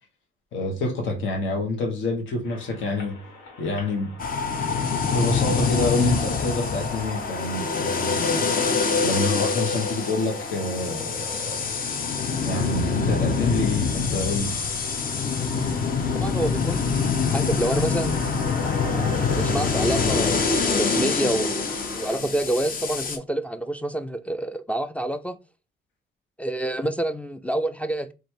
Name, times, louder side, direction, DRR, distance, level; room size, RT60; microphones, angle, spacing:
voice 1, 0.5-3.2 3.6-4.1 5.1-8.5 9.0-11.7 12.4-14.5, left 2 dB, 75° left, 1.3 m, -27 dB
sound 1, 2.4-22.2, left 3 dB, 90° left, 1.7 m, -41 dB
sound 2, 4.2-23.2, left 5 dB, 45° left, 0.8 m, -25 dB
voice 2, 16.2-16.9 17.3-18.2 19.3-25.4 26.4-28.1, right 1 dB, 5° left, 0.3 m, -27 dB
3.1 x 2.6 x 4.4 m
cardioid pair, 90°, 20 cm